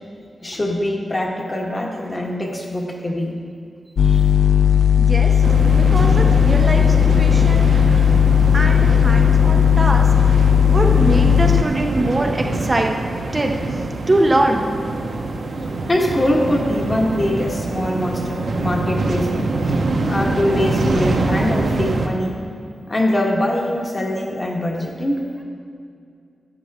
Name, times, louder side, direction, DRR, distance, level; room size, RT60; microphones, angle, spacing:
voice 1, 0.4-3.4 4.0-4.3 15.9-22.4 22.9-25.3, left 1 dB, 25° left, -1 dB, 1.4 m, -23 dB
sound 1, 4.0-11.6, left 8 dB, 85° left, 0.3 m, -15 dB
voice 2, 5.0-5.4 5.8-8.0 8.5-10.4 10.7-12.9 13.3-13.8 14.1-14.7, right 1 dB, 25° right, 2 dB, 0.6 m, -22 dB
sound 2, 5.4-22.1, right 2 dB, 70° right, 1.0 m, -24 dB
11.5 x 10.5 x 3.5 m, 2.3 s
wide cardioid pair, 135°, 0 cm